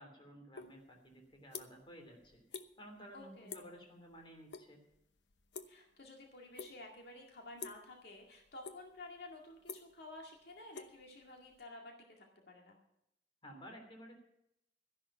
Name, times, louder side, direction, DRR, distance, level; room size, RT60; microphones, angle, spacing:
voice 1, 0.0-2.4 2.8-4.8 13.4-14.1, equal, 30° left, 2 dB, 3.1 m, -54 dB
sound 1, 0.5-0.7 1.1-1.9 2.2-2.7 3.0-3.2 3.5-3.8 4.1-4.7 4.9-6.1 6.5-7.0 7.6-7.9 8.3-9.0 9.3-11.6, left 5 dB, 85° left, 0.9 m, -48 dB
voice 2, 3.1-3.8 5.7-12.8, left 2 dB, 65° left, 1 dB, 2.1 m, -52 dB
13.0 x 11.0 x 5.7 m, 0.79 s
head